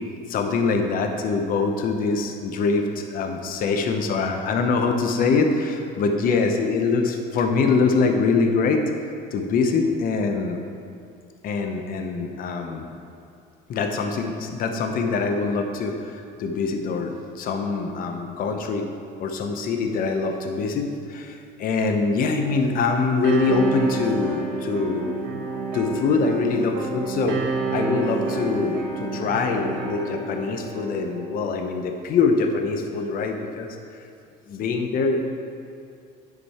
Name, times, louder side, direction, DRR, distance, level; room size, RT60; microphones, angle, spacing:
voice 1, 0.3-8.8 9.3-10.6 11.4-12.9 13.7-15.9 16.4-18.9 19.2-21.3 21.6-25.2 25.7-33.7 34.5-35.2, left 4 dB, 45° left, 5 dB, 0.8 m, -24 dB
sound 1, 23.2-31.3, right 4 dB, 60° right, 1.4 m, -29 dB
9.7 x 5.3 x 4.2 m, 2.5 s
cardioid pair, 115°, 20 cm